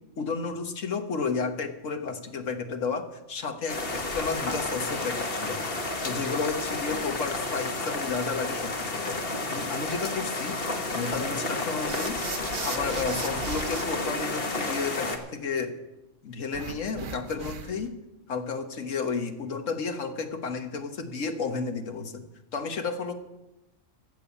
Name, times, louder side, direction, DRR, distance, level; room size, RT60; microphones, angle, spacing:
voice 1, 0.2-5.6 6.0-9.2 9.5-10.6 10.9-12.2 12.6-15.7 16.2-17.9 18.3-22.2 22.5-23.1, left 4 dB, 70° left, 7 dB, 1.6 m, -32 dB
sound 1, 3.7-15.2, left 2 dB, 45° left, 1.5 m, -31 dB
sound 2, 11.9-13.8 16.5-17.9, right 5 dB, 45° right, 0.9 m, -37 dB
14.5 x 7.2 x 8.2 m, 0.96 s
omnidirectional pair, 1.4 m